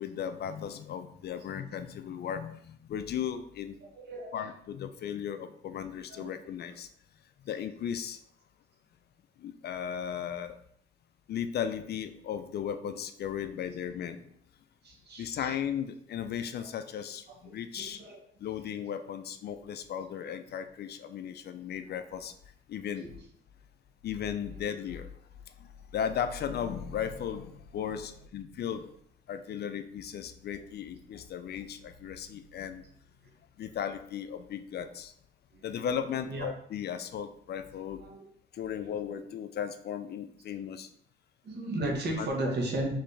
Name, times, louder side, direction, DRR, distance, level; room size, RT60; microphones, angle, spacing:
voice 1, 0.0-3.8 4.3-6.9 7.4-8.2 9.4-10.6 11.3-14.3 15.2-18.0 18.4-22.3 22.7-23.1 24.0-25.1 25.5-28.9 29.3-32.8 33.6-35.1 35.6-38.0 38.5-40.9 42.2-42.3, left 8 dB, 55° left, 10 dB, 0.4 m, -36 dB
voice 2, 4.0-4.4 6.1-6.4 14.8-15.5 16.6-16.7 17.8-18.2 23.0-23.1 35.5-35.6 36.2-36.5 38.0-38.2 41.4-43.0, right 1 dB, 55° right, 0 dB, 1.3 m, -34 dB
4.3 x 3.2 x 3.2 m, 0.67 s
cardioid pair, 90°, 20 cm